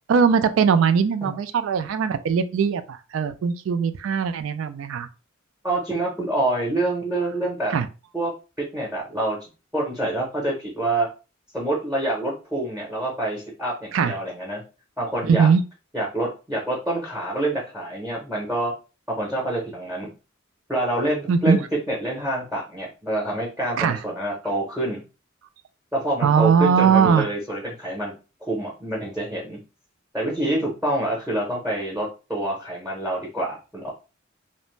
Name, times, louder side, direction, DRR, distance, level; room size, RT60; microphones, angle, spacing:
voice 1, 0.1-5.1 7.7-7.9 13.9-14.1 15.2-15.6 21.3-21.6 23.8-24.0 26.2-27.3, right 6 dB, 70° right, 0.3 m, -20 dB
voice 2, 5.6-7.7 8.1-8.3 8.6-9.4 9.7-11.1 11.5-14.6 15.0-15.5 15.9-18.7 19.1-20.1 20.7-25.0 25.9-28.1 28.4-29.6 30.1-33.9, right 1 dB, 5° right, 0.7 m, -26 dB
2.5 x 2.0 x 3.1 m
head